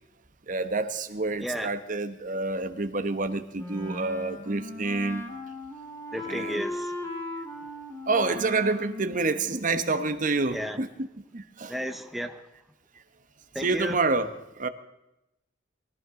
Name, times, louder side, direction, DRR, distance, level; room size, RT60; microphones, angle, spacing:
voice 1, 0.5-5.2 6.3-6.6 8.1-10.9 11.3-11.7 13.6-14.3 14.6-14.7, right 3 dB, 45° right, 9 dB, 1.0 m, -28 dB
voice 2, 1.4-1.7 6.1-7.0 10.5-10.8 11.7-12.4 13.5-14.0, equal, ahead, 5 dB, 0.8 m, -33 dB
Wind instrument woodwind instrument, 3.5-10.2, left 1 dB, 15° left, 2.1 m, -38 dB
22.5 x 14.5 x 3.7 m, 0.89 s
head